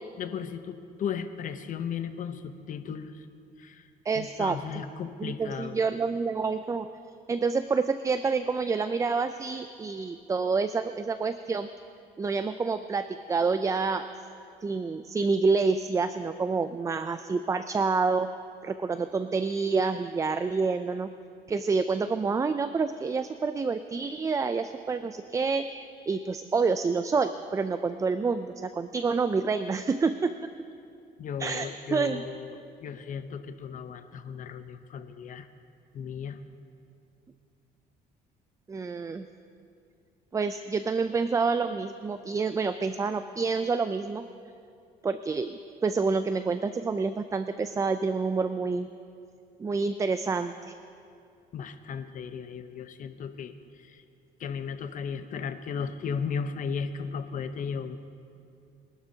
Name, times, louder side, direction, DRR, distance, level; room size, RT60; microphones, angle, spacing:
voice 1, 0.2-3.3 3.6-3.9 4.1-5.8 31.2-35.5 35.9-36.4 51.5-54.0 54.4-58.0, left 6 dB, 50° left, 10 dB, 0.8 m, -35 dB
voice 2, 4.1-4.6 5.2-6.9 7.3-11.7 12.2-14.1 14.6-18.3 18.6-21.1 21.5-25.7 26.1-30.3 31.4-32.2 38.7-39.3 40.3-44.3 45.0-48.9 49.6-50.7, right 4 dB, 20° right, 11 dB, 0.4 m, -28 dB
23.5 x 12.0 x 2.8 m, 2.5 s
cardioid pair, 110°, 17 cm